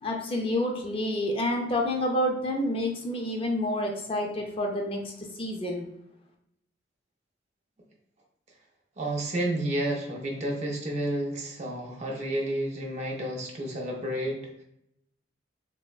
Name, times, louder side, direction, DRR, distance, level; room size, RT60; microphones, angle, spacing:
voice 1, 0.0-5.0 5.4-5.9, left 1 dB, 30° left, 1 dB, 0.4 m, -28 dB
voice 2, 9.0-14.6, right 1 dB, 35° right, 0 dB, 0.4 m, -31 dB
3.3 x 2.0 x 2.3 m, 0.78 s
head